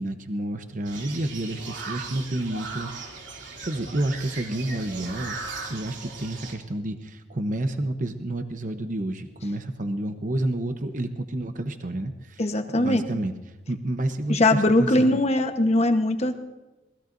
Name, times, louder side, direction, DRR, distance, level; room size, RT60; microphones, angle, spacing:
voice 1, 0.0-12.5 12.7-13.3 13.7-15.2, right 1 dB, 45° right, 7 dB, 0.9 m, -30 dB
sound 1, 0.8-6.5, right 4 dB, 85° right, 2.8 m, -38 dB
voice 2, 12.4-13.2 14.3-16.3, left 1 dB, 35° left, 7 dB, 1.1 m, -21 dB
26.5 x 19.5 x 2.6 m, 1.1 s
head